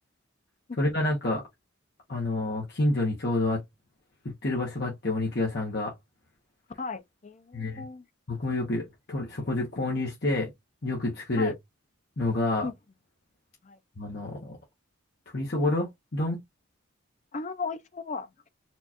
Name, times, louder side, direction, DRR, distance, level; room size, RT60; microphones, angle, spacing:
voice 1, 0.8-1.4 2.1-3.6 4.4-5.9 7.5-7.8 8.3-10.5 10.8-11.5 12.2-12.7 14.0-14.6 15.3-16.4, left 2 dB, 50° left, 0.9 m, -28 dB
voice 2, 6.8-8.0 11.4-11.5 12.6-12.7 13.6-13.8 17.3-18.5, left 4 dB, 35° left, 0.4 m, -36 dB
4.3 x 2.4 x 2.7 m
head